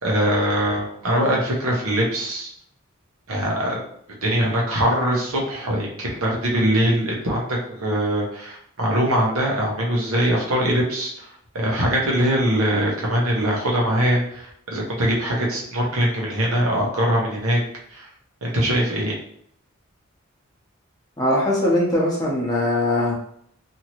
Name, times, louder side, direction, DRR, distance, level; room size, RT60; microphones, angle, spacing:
voice 1, 0.0-2.5 3.3-3.8 4.2-11.3 11.5-17.6 17.9-18.1 18.4-19.2, equal, 75° right, -3 dB, 0.9 m, -22 dB
voice 2, 21.2-23.1, left 1 dB, 15° left, -4 dB, 0.8 m, -21 dB
2.9 x 2.7 x 2.9 m, 0.68 s
head